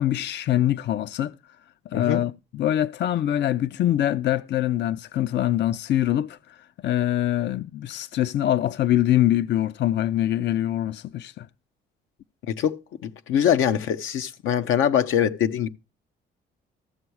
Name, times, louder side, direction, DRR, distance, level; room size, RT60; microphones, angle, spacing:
voice 1, 0.0-1.3 1.9-11.5, left 12 dB, 60° left, 0.5 m, -24 dB
voice 2, 12.5-15.7, left 9 dB, 85° left, 0.8 m, -23 dB
14.0 x 7.0 x 4.7 m
cardioid pair, 90°, 20 cm